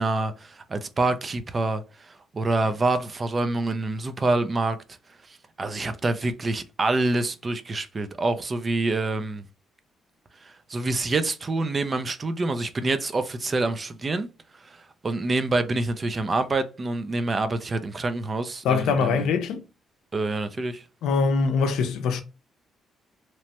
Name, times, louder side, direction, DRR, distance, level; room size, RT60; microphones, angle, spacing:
voice 1, 0.0-4.8 5.6-9.4 10.4-14.3 14.6-19.2 20.1-20.8, right 2 dB, 35° right, 0.4 m, -26 dB
voice 2, 18.6-19.6 21.0-22.2, left 5 dB, 85° left, 0.5 m, -23 dB
3.0 x 2.1 x 2.8 m
cardioid pair, 90°, 0 cm